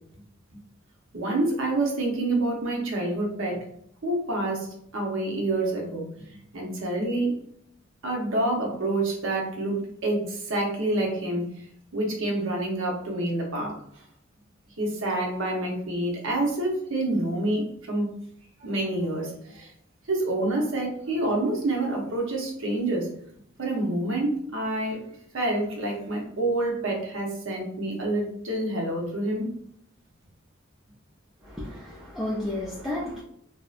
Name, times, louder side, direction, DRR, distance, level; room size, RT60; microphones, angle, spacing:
voice 1, 1.1-3.7 4.0-4.7 4.9-7.3 8.0-11.6 11.9-14.0 14.8-18.1 18.6-19.7 20.1-23.1 23.6-25.0 25.3-29.5, right 2 dB, 70° right, -1 dB, 0.8 m, -27 dB
voice 2, 31.4-33.2, left 1 dB, ahead, -8 dB, 0.4 m, -32 dB
2.7 x 2.1 x 2.4 m, 0.71 s
head